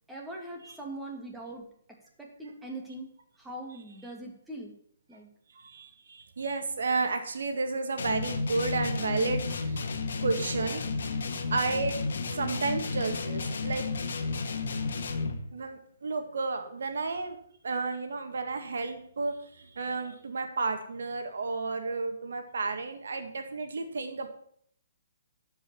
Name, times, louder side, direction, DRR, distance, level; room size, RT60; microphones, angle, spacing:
voice 1, 0.1-1.7 2.2-3.1 3.4-4.7 5.1-5.3, right 1 dB, 5° right, -1 dB, 2.4 m, -41 dB
voice 2, 5.5-10.9 11.5-12.0 12.3-13.9 15.5-17.4 17.6-24.3, right 3 dB, 75° right, 6 dB, 1.9 m, -32 dB
sound 1, 8.0-15.5, left 4 dB, 70° left, 1.6 m, -32 dB
12.0 x 5.5 x 6.9 m, 0.65 s
hypercardioid pair, 140°, 0 cm